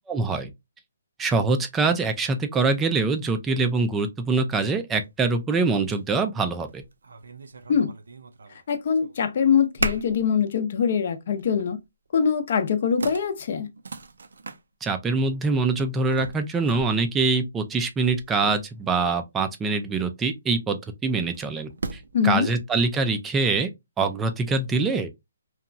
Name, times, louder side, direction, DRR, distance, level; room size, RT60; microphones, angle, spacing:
voice 1, 0.1-0.5 1.2-6.8 14.8-23.7 24.0-25.1, right 3 dB, 10° right, 0.3 m, -24 dB
sound 1, 5.0-5.1 5.8-6.0 6.5-8.6 8.9-9.4 9.8-10.3 10.7-10.9 11.4-11.8 12.5-12.6 13.0-14.6 16.1-19.0 21.2-22.2, right 3 dB, 75° right, 0.4 m, -36 dB
voice 2, 8.7-11.8 12.1-13.7 22.1-22.5, left 7 dB, 45° left, 0.5 m, -23 dB
2.8 x 2.2 x 2.5 m
hypercardioid pair, 160°, 0 cm